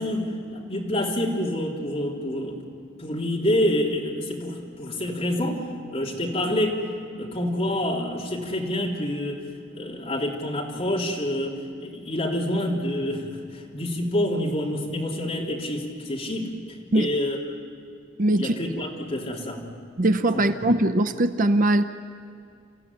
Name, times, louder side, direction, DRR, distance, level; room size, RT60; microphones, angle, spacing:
voice 1, 0.0-2.6 3.0-6.9 7.2-9.4 9.7-13.3 13.5-16.5 16.9-17.4 18.3-19.7 20.3-20.4, left 1 dB, 30° left, -2 dB, 3.5 m, -27 dB
voice 2, 18.2-18.5 20.0-21.8, right 1 dB, 45° right, 9 dB, 0.7 m, -21 dB
28.0 x 15.0 x 9.8 m, 2.4 s
head